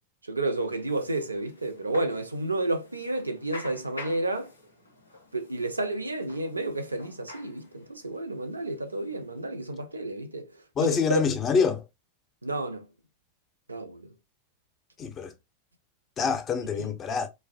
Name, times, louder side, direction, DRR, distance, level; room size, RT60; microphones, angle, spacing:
voice 1, 0.2-4.5 5.3-11.2 12.4-12.9 13.7-14.1 16.8-17.0, right 2 dB, 85° right, 0.4 m, -31 dB
sound 1, 0.5-9.9, left 2 dB, 85° left, 0.6 m, -48 dB
voice 2, 10.8-11.8 15.0-15.3 16.2-17.3, left 6 dB, 30° left, 0.5 m, -26 dB
2.5 x 2.1 x 2.4 m
figure-of-eight pair, 90°, 0 cm